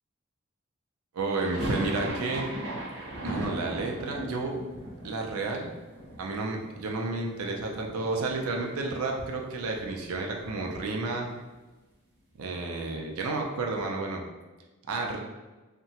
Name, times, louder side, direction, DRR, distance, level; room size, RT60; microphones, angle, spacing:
voice 1, 1.1-2.5 3.2-4.5 5.0-5.7 6.2-11.3 12.4-14.2 14.9-15.2, right 3 dB, 75° right, 1 dB, 0.4 m, -31 dB
sound 1, 1.3-7.3 7.5-8.4 8.6-8.7 9.0-11.2, right 1 dB, 55° right, 0.8 m, -38 dB
2.8 x 2.2 x 2.7 m, 1.2 s
head